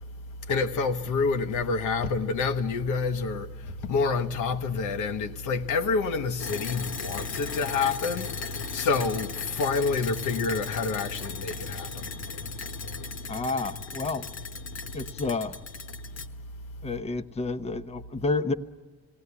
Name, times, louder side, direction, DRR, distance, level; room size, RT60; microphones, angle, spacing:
voice 1, 0.5-12.2 12.8-13.2, left 4 dB, 80° left, 1.0 m, -28 dB
sound 1, 6.4-16.3, left 5 dB, 60° left, 1.2 m, -37 dB
voice 2, 13.3-14.2 14.9-15.6 16.8-18.5, left 3 dB, 20° left, 0.8 m, -30 dB
19.5 x 17.0 x 9.7 m
cardioid pair, 90°, 30 cm